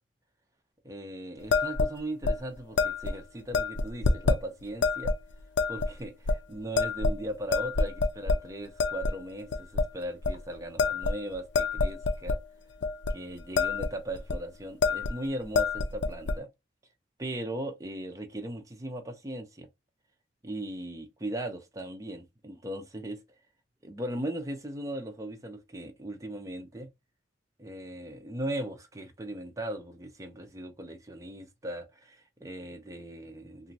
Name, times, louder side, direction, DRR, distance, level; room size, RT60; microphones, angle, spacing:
voice 1, 0.8-5.1 5.7-12.4 13.1-16.5 17.2-19.7 20.4-23.2 23.8-26.9 27.6-33.7, right 1 dB, 20° right, 0.6 m, -38 dB
sound 1, 1.5-1.9 2.2-2.4 2.8-3.1 3.5-4.4 4.8-5.2 5.6-5.9 6.3-6.4 6.8-7.2 7.5-8.4 8.8-9.1 9.5-9.9 10.2-10.4 10.8-12.4 12.8-13.1 13.4-13.9 14.2-14.4 14.8-15.2 15.4-16.4, left 4 dB, 85° left, 0.4 m, -26 dB
3.0 x 2.3 x 2.6 m
head